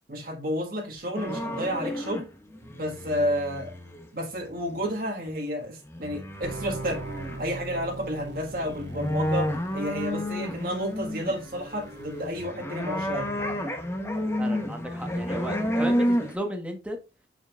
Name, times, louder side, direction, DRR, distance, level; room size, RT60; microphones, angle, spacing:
voice 1, 0.1-2.3 2.7-3.7 4.1-7.0 7.4-13.3, equal, 55° right, 1.6 m, -31 dB
sound 1, 1.2-2.2 2.5-4.1 5.3-5.4 5.9-7.4 7.8-7.9 8.1-16.3, equal, 15° left, 0.9 m, -30 dB
sound 2, 6.4-12.4, right 3 dB, 75° right, 0.6 m, -42 dB
voice 2, 14.4-17.0, equal, 5° right, 1.3 m, -34 dB
7.1 x 5.9 x 2.4 m
head